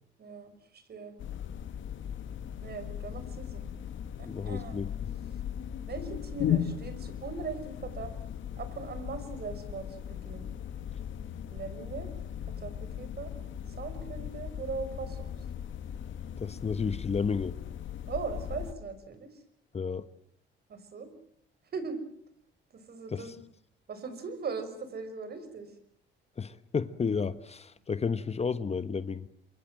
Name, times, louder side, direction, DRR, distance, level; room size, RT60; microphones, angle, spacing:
voice 1, 0.2-1.2 2.6-3.7 4.2-4.8 5.8-8.1 8.6-10.5 11.5-12.1 12.6-13.3 13.7-15.3 18.1-19.3 20.7-21.1 21.7-22.0 22.7-23.4 23.9-25.7, right 5 dB, 55° right, 5.6 m, -39 dB
sound 1, 1.2-18.7, left 9 dB, 75° left, 1.9 m, -37 dB
voice 2, 4.2-4.9 16.4-17.5 19.7-20.0 23.1-23.4 26.4-29.3, left 5 dB, 30° left, 1.2 m, -32 dB
28.0 x 23.0 x 7.6 m
cardioid pair, 90°, 20 cm